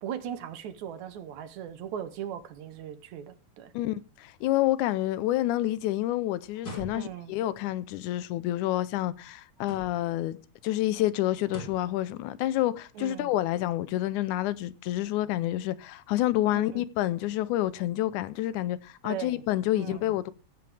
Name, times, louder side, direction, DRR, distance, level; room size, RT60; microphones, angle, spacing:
voice 1, 0.0-3.7 6.9-7.3 13.0-13.3 16.5-16.8 19.0-19.4 19.7-20.1, right 9 dB, 75° right, 2.2 m, -38 dB
voice 2, 3.7-10.4 10.6-20.3, left 14 dB, 85° left, 2.1 m, -28 dB
sound 1, 6.5-7.4 9.6-10.2 11.4-12.0, left 1 dB, 35° left, 3.4 m, -43 dB
16.0 x 7.8 x 3.3 m
omnidirectional pair, 3.4 m